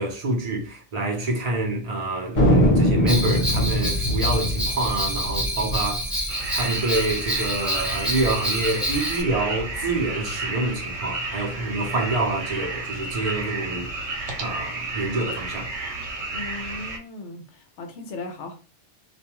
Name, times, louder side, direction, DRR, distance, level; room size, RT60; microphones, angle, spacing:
voice 1, 0.0-6.2 6.5-13.9 14.4-15.7, right 2 dB, 45° right, 0.6 m, -27 dB
Thunder, 2.4-7.2 7.4-7.5 7.7-8.3 8.8-10.0, equal, 35° left, 0.9 m, -23 dB
Bell, 3.1-9.2, equal, ahead, 0.6 m, -28 dB
sound 1, 6.3-17.0, right 2 dB, 70° right, 1.0 m, -32 dB
voice 2, 16.3-18.5, left 3 dB, 75° left, 1.0 m, -37 dB
2.5 x 2.2 x 2.9 m
omnidirectional pair, 1.2 m